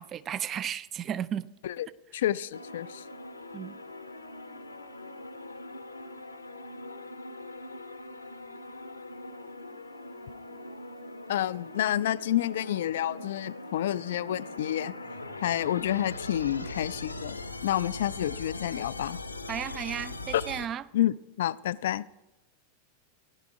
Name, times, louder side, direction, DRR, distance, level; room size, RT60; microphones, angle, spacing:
voice 1, 0.0-1.5 3.5-3.8 19.5-20.8, right 9 dB, 30° right, 18 dB, 0.5 m, -34 dB
voice 2, 2.1-3.1 11.3-14.9 15.4-17.4 17.6-19.2 20.3-20.4 20.9-22.1, left 12 dB, 60° left, 19 dB, 0.4 m, -29 dB
sound 1, 2.5-20.6, left 2 dB, 80° left, 0.8 m, -41 dB
15.5 x 10.5 x 4.7 m, 0.99 s
figure-of-eight pair, 90°, 0 cm